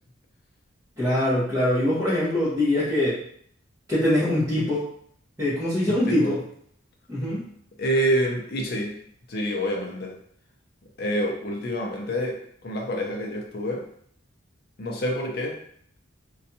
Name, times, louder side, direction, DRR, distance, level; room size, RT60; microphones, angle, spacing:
voice 1, 1.0-3.2 3.9-4.8 5.4-6.4 7.1-7.4, left 1 dB, 15° right, -13 dB, 0.9 m, -23 dB
voice 2, 5.9-6.3 7.8-9.0 9.3-10.2 11.0-13.9 14.8-15.6, equal, 50° left, 1 dB, 0.5 m, -27 dB
2.5 x 2.3 x 2.7 m, 0.63 s
head